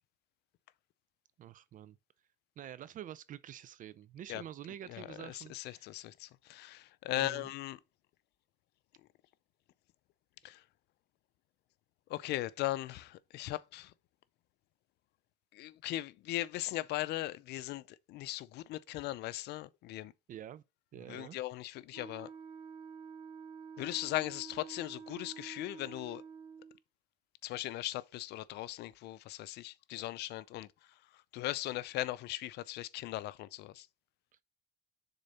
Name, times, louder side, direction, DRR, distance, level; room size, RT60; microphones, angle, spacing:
voice 1, 1.4-2.0 2.6-6.0 7.1-7.5 20.3-20.6 20.9-21.4, right 11 dB, 50° right, 0.5 m, -47 dB
voice 2, 4.9-7.8 10.4-10.6 12.1-13.9 15.5-20.1 21.1-22.3 23.8-26.2 27.4-30.7 31.3-33.9, left 16 dB, 80° left, 0.6 m, -38 dB
Wind instrument woodwind instrument, 21.9-26.8, right 6 dB, 35° right, 0.9 m, -49 dB
6.8 x 3.8 x 5.5 m
cardioid pair, 110°, 17 cm